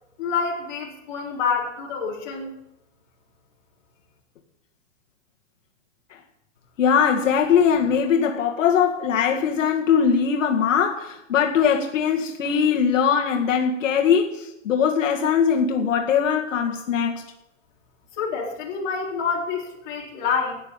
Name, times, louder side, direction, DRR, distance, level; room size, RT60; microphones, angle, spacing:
voice 1, 0.2-2.5 18.2-20.6, left 5 dB, 40° left, 3.9 m, -27 dB
voice 2, 6.8-17.2, left 7 dB, 85° left, 2.1 m, -21 dB
12.0 x 9.4 x 9.1 m
supercardioid pair, 175°, 37 cm